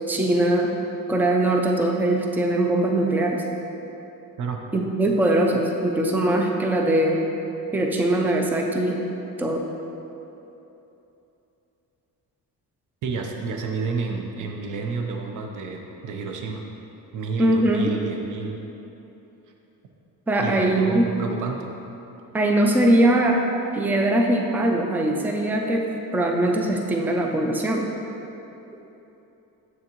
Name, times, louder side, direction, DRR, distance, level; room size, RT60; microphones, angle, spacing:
voice 1, 0.1-0.7 1.1-3.4 4.7-7.2 7.7-9.0 9.4-9.6 17.4-17.9 20.3-21.1 22.3-23.4 23.7-27.9, right 1 dB, 5° right, 1 dB, 0.3 m, -21 dB
voice 2, 13.0-16.6 17.1-18.6 20.4-21.7, right 4 dB, 60° right, 2 dB, 0.7 m, -30 dB
7.1 x 6.2 x 2.9 m, 3.0 s
cardioid pair, 160°, 35 cm